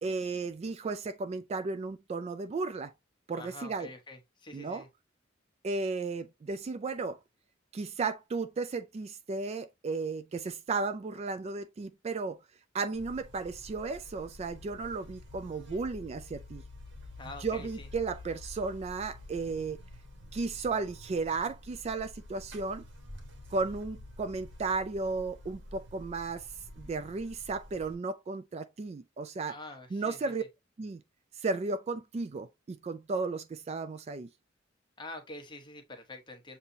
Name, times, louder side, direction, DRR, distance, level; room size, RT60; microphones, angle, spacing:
voice 1, 0.0-2.9 3.3-3.9 4.5-4.9 5.6-7.2 7.7-12.4 12.7-16.6 17.4-19.8 20.3-22.8 23.5-26.5 26.8-29.6 29.9-30.4 30.8-31.0 31.4-34.3, right 4 dB, 35° right, 0.3 m, -34 dB
voice 2, 3.3-4.9 17.2-17.9 29.5-30.2 35.0-36.6, left 2 dB, 25° left, 1.0 m, -46 dB
Buzz, 12.9-27.9, left 1 dB, 65° right, 1.4 m, -49 dB
7.1 x 2.8 x 2.6 m
head